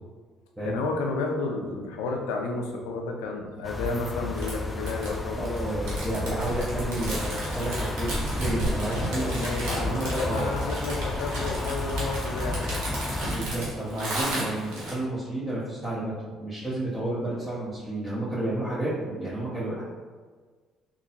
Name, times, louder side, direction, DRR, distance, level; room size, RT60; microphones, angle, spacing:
voice 1, 0.6-5.5 9.0-12.8 16.7-16.8, left 3 dB, 85° left, 1 dB, 0.5 m, -32 dB
sound 1, 3.6-13.4, left 2 dB, 20° left, 0.4 m, -32 dB
sound 2, 4.3-14.9, right 1 dB, 80° right, 1.3 m, -34 dB
voice 2, 5.4-10.5 13.3-19.8, right 1 dB, 5° right, -11 dB, 1.2 m, -31 dB
3.8 x 2.7 x 2.8 m, 1.5 s
supercardioid pair, 70°, 0 cm